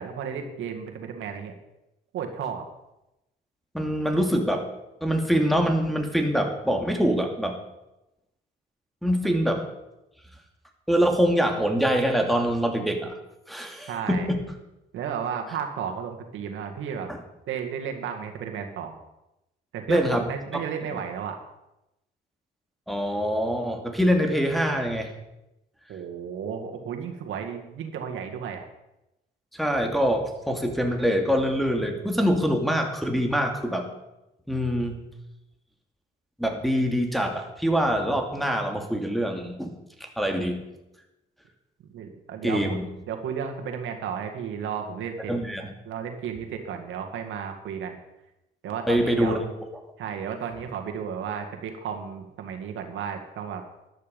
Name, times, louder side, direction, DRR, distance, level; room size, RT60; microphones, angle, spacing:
voice 1, 0.0-1.5 2.1-2.6 13.9-14.3 14.9-17.1 17.5-19.0 19.7-21.4 25.9-28.7 41.9-42.8 43.1-45.3 45.9-48.0 48.6-49.4 50.0-53.6, right 7 dB, 80° right, 4 dB, 2.0 m, -33 dB
voice 2, 3.7-4.7 5.0-7.6 9.0-9.7 10.9-13.1 13.5-14.4 17.1-17.2 19.9-20.3 20.5-20.6 22.9-25.1 29.5-33.9 34.5-35.0 36.4-39.7 40.0-40.6 42.4-42.8 45.3-45.7 48.9-49.4, equal, ahead, 2 dB, 2.4 m, -24 dB
13.5 x 11.0 x 5.3 m, 0.92 s
cardioid pair, 90°, 20 cm